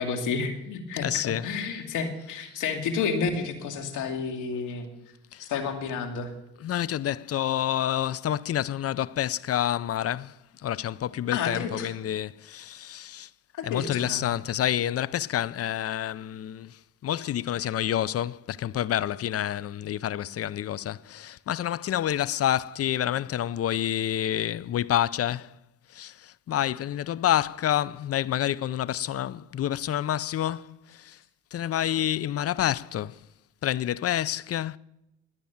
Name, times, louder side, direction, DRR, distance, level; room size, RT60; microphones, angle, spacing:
voice 1, 0.0-4.9 5.4-6.3 11.3-11.9 13.5-14.2, left 5 dB, 90° left, 2.5 m, -30 dB
voice 2, 1.0-1.5 2.5-2.6 5.3-5.5 6.6-13.3 13.6-25.5 25.9-31.2 31.5-33.2 33.6-34.8, left 11 dB, 50° left, 0.6 m, -28 dB
19.5 x 9.7 x 7.2 m
cardioid pair, 90°, 30 cm